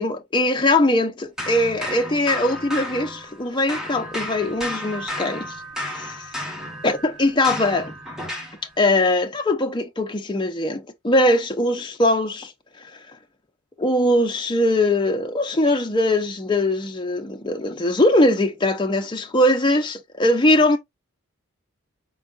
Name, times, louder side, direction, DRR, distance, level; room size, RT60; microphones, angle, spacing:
voice 1, 0.0-5.5 5.9-6.2 6.8-7.9 8.8-12.5 13.8-20.8, left 1 dB, 20° left, 0.5 m, -21 dB
sound 1, 1.4-3.4 3.7-8.6, left 1 dB, 5° right, 0.9 m, -32 dB
4.5 x 4.0 x 2.3 m
head